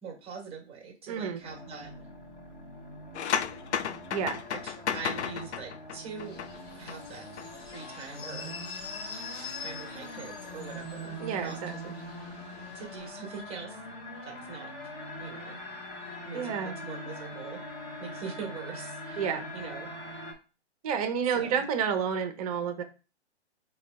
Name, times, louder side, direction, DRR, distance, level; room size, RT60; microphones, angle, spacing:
voice 1, 0.0-1.9 4.5-6.4 6.8-7.3 7.7-8.5 9.6-11.8 12.2-12.3 12.7-13.8 14.3-14.7 15.2-15.6 16.2-17.6 18.0-19.9 21.3-21.6, right 5 dB, 15° right, 0 dB, 1.0 m, -42 dB
voice 2, 1.1-1.4 4.1-4.4 11.2-11.9 16.3-16.8 19.2-19.4 20.8-22.8, right 7 dB, 35° right, 7 dB, 0.7 m, -30 dB
sound 1, 1.4-20.3, equal, 15° left, 0.7 m, -43 dB
sound 2, 3.1-7.0 7.2-7.5, left 8 dB, 75° left, 0.5 m, -33 dB
sound 3, 6.2-13.1, left 5 dB, 40° left, 1.0 m, -45 dB
3.9 x 2.3 x 3.3 m, 0.33 s
figure-of-eight pair, 125°, 34 cm